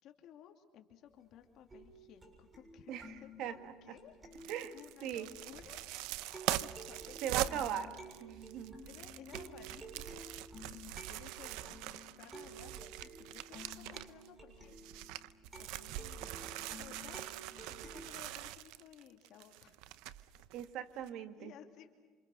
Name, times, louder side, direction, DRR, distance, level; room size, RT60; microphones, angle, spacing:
voice 1, 0.0-4.2 4.7-5.8 6.2-7.7 8.8-10.4 10.7-15.1 15.5-19.8 21.0-21.9, left 10 dB, 55° left, 5 dB, 2.5 m, -57 dB
sound 1, 1.7-5.9 6.3-18.0, right 1 dB, 15° right, 7.0 m, -53 dB
voice 2, 2.9-3.7 4.5-4.7 5.0-5.3 7.2-7.9 8.2-8.8 20.5-21.5, right 10 dB, 60° right, 9 dB, 1.7 m, -39 dB
sound 2, 4.3-14.3 14.6-20.7 21.0-21.1, right 14 dB, 80° right, 0.8 m, -43 dB
27.5 x 27.5 x 6.5 m, 1.5 s
cardioid pair, 135°, 0 cm